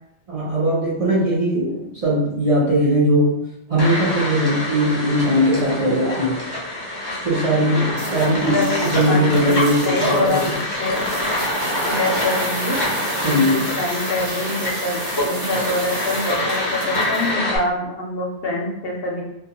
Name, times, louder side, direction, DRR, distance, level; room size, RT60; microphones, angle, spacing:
voice 1, 0.3-3.3 3.7-6.4 7.2-10.5 13.2-13.7, equal, 40° right, -8 dB, 0.6 m, -19 dB
sound 1, 3.8-17.6, left 1 dB, 30° left, 0.5 m, -26 dB
sound 2, 5.2-6.5 7.0-17.3, right 1 dB, 60° right, 1.0 m, -31 dB
voice 2, 8.3-10.4 10.8-11.0 11.9-12.8 13.3-13.5 13.7-19.2, left 1 dB, 65° left, -2 dB, 0.7 m, -25 dB
2.4 x 2.2 x 2.8 m, 0.85 s
omnidirectional pair, 1.2 m